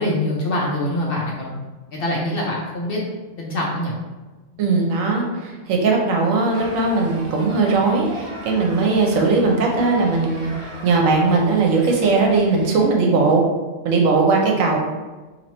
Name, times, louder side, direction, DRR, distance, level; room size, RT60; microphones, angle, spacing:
voice 1, 0.0-1.6 1.9-3.0 3.4-3.9, left 1 dB, 55° left, -3 dB, 0.7 m, -24 dB
voice 2, 4.6-10.5 10.8-13.4 13.8-14.8, right 3 dB, 80° right, 1 dB, 1.1 m, -19 dB
sound 1, 6.5-12.8, right 1 dB, 40° right, 0.5 m, -37 dB
2.9 x 2.7 x 4.2 m, 1.2 s
omnidirectional pair, 1.4 m